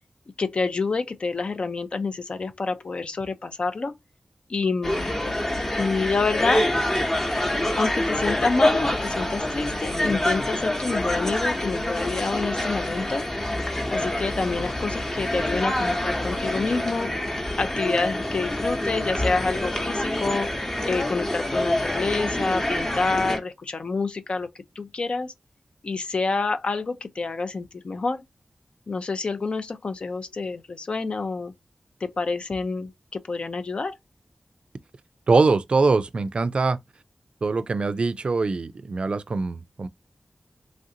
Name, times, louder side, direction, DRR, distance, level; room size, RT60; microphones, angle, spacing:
voice 1, 0.4-3.9 4.5-5.2 5.8-6.8 7.8-13.3 13.9-17.1 17.6-20.5 20.8-24.5 24.8-25.3 25.8-28.2 28.9-31.5 32.0-34.0, left 4 dB, 65° left, 0.5 m, -28 dB
sound 1, 4.8-23.4, left 1 dB, 25° left, 0.8 m, -26 dB
voice 2, 35.3-36.8 37.4-39.9, right 3 dB, 60° right, 0.3 m, -23 dB
3.2 x 2.5 x 2.7 m
cardioid pair, 55°, 2 cm